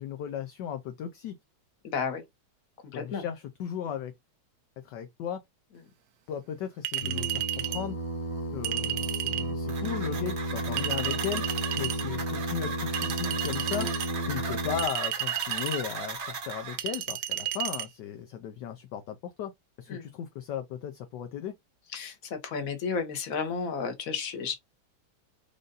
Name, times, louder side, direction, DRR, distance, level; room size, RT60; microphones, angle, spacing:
voice 1, 0.0-1.4 2.9-4.1 4.8-5.4 6.3-8.0 8.5-13.9 14.3-19.5 19.8-21.5, left 9 dB, 70° left, 1.2 m, -36 dB
voice 2, 1.9-2.2 2.9-3.2 19.9-20.1 21.9-24.5, left 5 dB, 50° left, 1.4 m, -32 dB
Chink clink, 6.8-7.8 8.6-9.5 10.8-12.0 12.9-14.1 14.8-15.8 16.8-17.9, right 12 dB, 70° right, 0.9 m, -32 dB
Singing, 7.0-14.9, right 1 dB, 25° left, 0.8 m, -33 dB
sound 1, 9.7-16.8, right 5 dB, 45° right, 1.0 m, -37 dB
5.2 x 2.6 x 3.9 m
omnidirectional pair, 2.2 m